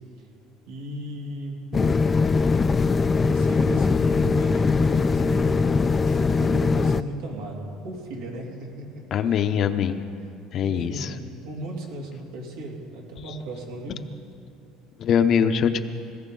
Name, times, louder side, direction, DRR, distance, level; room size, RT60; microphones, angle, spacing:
voice 1, 0.7-2.0 3.2-9.4 10.2-10.3 10.6-11.2 11.4-14.1, right 1 dB, 85° right, -1 dB, 3.0 m, -36 dB
sound 1, 1.7-7.0, left 4 dB, 25° left, 0.3 m, -21 dB
voice 2, 9.1-10.0 10.5-11.1 15.0-15.8, left 7 dB, 45° left, 10 dB, 0.7 m, -22 dB
18.5 x 16.0 x 3.9 m, 2.5 s
cardioid pair, 125°, 0 cm